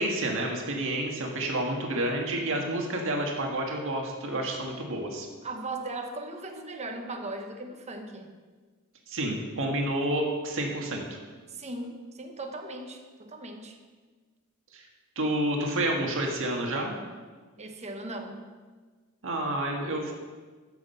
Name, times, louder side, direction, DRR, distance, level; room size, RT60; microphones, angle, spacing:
voice 1, 0.0-5.3 9.1-11.0 14.7-14.8 15.1-16.9 19.2-20.1, right 1 dB, 65° right, 1 dB, 1.7 m, -29 dB
voice 2, 5.4-8.3 11.5-13.8 17.6-18.4, right 2 dB, 30° right, 3 dB, 1.1 m, -38 dB
14.0 x 6.2 x 5.6 m, 1.4 s
head